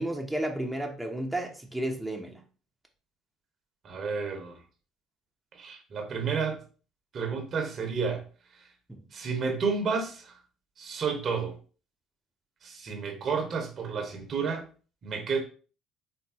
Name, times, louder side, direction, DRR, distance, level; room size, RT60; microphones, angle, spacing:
voice 1, 0.0-2.4, right 1 dB, 5° right, 0.9 m, -32 dB
voice 2, 3.8-4.6 5.6-6.6 7.1-8.2 9.1-10.3 10.8-11.5 12.6-14.6 15.0-15.4, right 5 dB, 45° right, 1.1 m, -31 dB
4.5 x 3.8 x 2.8 m
figure-of-eight pair, 55°, 0 cm